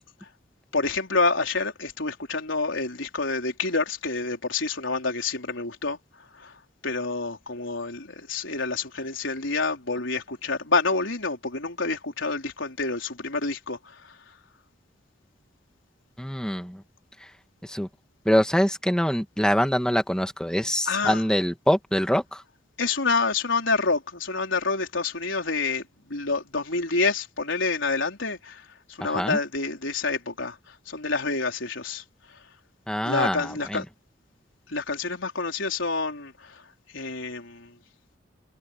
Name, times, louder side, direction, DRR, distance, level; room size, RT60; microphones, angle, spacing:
voice 1, 0.7-6.0 6.3-6.5 6.8-14.2 20.9-21.2 22.8-32.0 33.0-33.8 34.7-36.6 36.9-37.7, left 3 dB, 85° left, 4.1 m, -28 dB
voice 2, 16.2-16.8 17.6-17.9 18.3-22.4 29.0-29.4 32.9-33.8, equal, 5° left, 1.8 m, -24 dB
head